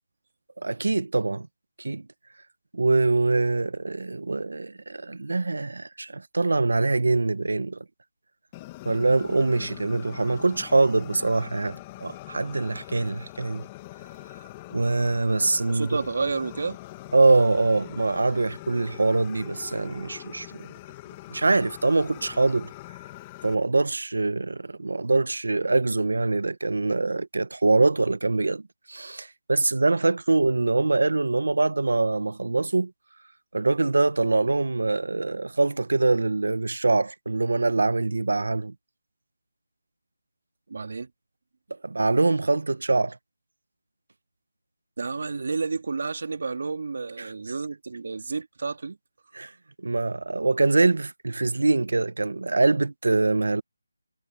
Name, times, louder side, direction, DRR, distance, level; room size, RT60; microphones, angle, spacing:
voice 1, 0.6-1.5 1.8-2.0 2.7-7.8 8.8-13.6 14.7-15.9 17.1-20.7 21.3-22.7 23.4-28.6 28.9-32.9 33.5-38.7 41.8-43.2 49.3-49.5 49.8-53.6, right 3 dB, 70° right, 1.5 m, -24 dB
Fire, 8.5-23.5, left 18 dB, 15° left, 2.2 m, -43 dB
voice 2, 15.7-16.8 40.7-41.1 45.0-49.0, right 4 dB, 55° right, 2.7 m, -30 dB
figure-of-eight pair, 165°, 0 cm